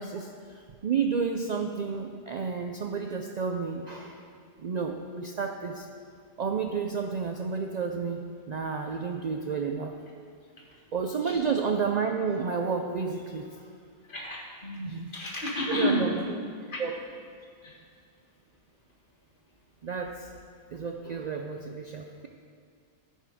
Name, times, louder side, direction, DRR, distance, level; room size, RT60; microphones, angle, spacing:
voice 1, 0.0-4.2 4.6-5.9 6.4-9.9 10.9-13.5 14.8-15.1 15.7-16.2 16.8-16.9 17.7-17.8 19.8-20.3 20.7-22.3, right 5 dB, 55° right, 4 dB, 0.5 m, -31 dB
voice 2, 14.1-16.1 16.7-16.8 17.6-17.8, equal, 50° left, -3 dB, 1.8 m, -31 dB
14.0 x 5.5 x 4.9 m, 2.2 s
omnidirectional pair, 1.1 m